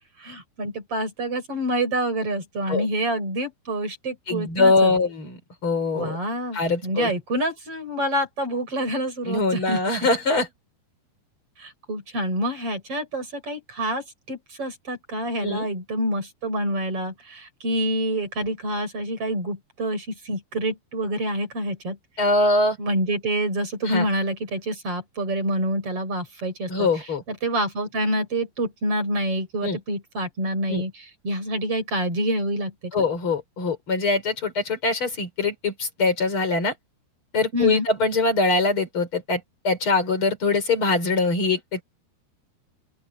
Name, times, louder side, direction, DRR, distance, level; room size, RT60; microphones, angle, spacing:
voice 1, 0.2-4.9 5.9-9.8 11.6-22.0 22.8-26.9 27.3-32.7 37.5-37.9, right 1 dB, 35° right, 7.1 m, -27 dB
voice 2, 4.3-6.2 6.5-7.1 9.3-10.5 15.4-15.7 22.2-22.8 23.9-24.1 26.7-27.2 29.6-29.8 30.7-30.8 32.9-36.7 37.3-41.8, left 3 dB, 30° left, 4.9 m, -23 dB
open air
omnidirectional pair, 4.7 m